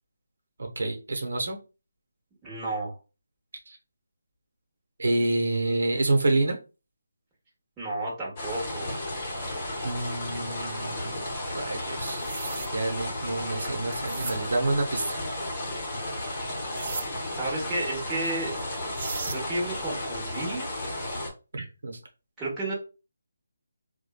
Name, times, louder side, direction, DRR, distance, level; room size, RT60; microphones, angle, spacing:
voice 1, 0.6-1.6 3.7-3.8 5.0-6.6 9.8-11.2 11.5-15.3 21.5-22.0, right 2 dB, 75° right, 3 dB, 0.8 m, -28 dB
voice 2, 2.4-3.0 7.8-8.9 17.2-18.5 19.3-20.7 22.4-22.7, right 2 dB, 10° right, -6 dB, 1.1 m, -32 dB
sound 1, 8.4-21.3, left 1 dB, 30° left, 0.9 m, -33 dB
sound 2, 12.1-12.7 13.9-14.4 16.7-17.1 18.6-18.7 18.9-19.4, right 5 dB, 50° right, 0.3 m, -36 dB
3.0 x 2.2 x 2.3 m, 0.31 s
figure-of-eight pair, 160°, 0 cm